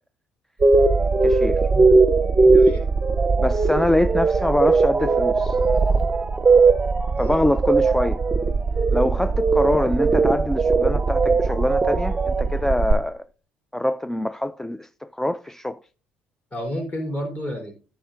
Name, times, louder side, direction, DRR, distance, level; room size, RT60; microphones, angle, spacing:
sound 1, 0.6-12.9, right 4 dB, 15° right, 0.8 m, -19 dB
voice 1, 1.2-1.6 3.4-5.6 7.2-8.2 8.9-13.3 13.7-15.8, left 1 dB, 5° left, 0.3 m, -24 dB
voice 2, 2.4-2.8 7.1-7.4 16.5-17.7, equal, 30° left, 3.5 m, -31 dB
14.0 x 6.6 x 2.5 m
figure-of-eight pair, 55°, 5 cm